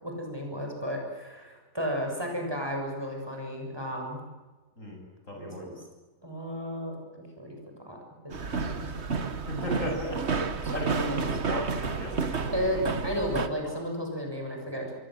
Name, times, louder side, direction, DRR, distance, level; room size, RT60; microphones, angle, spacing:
voice 1, 0.0-4.2 5.4-5.8 6.2-6.9 7.4-7.6 7.9-8.0 8.2-8.9 10.6-11.4 12.5-14.9, equal, 15° right, 1 dB, 7.1 m, -33 dB
voice 2, 5.3-5.7 9.5-10.2 10.7-12.8, equal, 55° left, 1 dB, 8.5 m, -35 dB
sound 1, 8.3-13.5, right 4 dB, 45° right, 1.7 m, -31 dB
26.5 x 23.5 x 7.8 m, 1.3 s
omnidirectional pair, 1.6 m